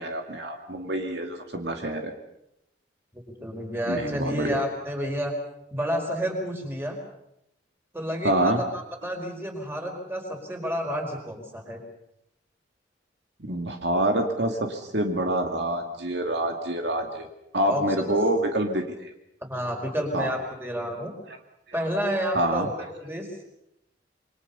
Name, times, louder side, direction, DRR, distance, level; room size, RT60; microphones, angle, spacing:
voice 1, 0.0-2.1 3.9-4.6 8.2-8.6 13.5-17.3 17.5-19.1 20.1-20.3 21.3-21.4 22.3-22.9, right 1 dB, 65° right, 4 dB, 2.3 m, -26 dB
voice 2, 3.1-5.3 5.7-7.0 7.9-8.6 9.0-11.8 17.6-18.1 19.5-21.1 21.7-22.7 23.0-23.3, equal, 15° right, 2 dB, 4.9 m, -30 dB
27.5 x 24.0 x 5.6 m, 0.82 s
head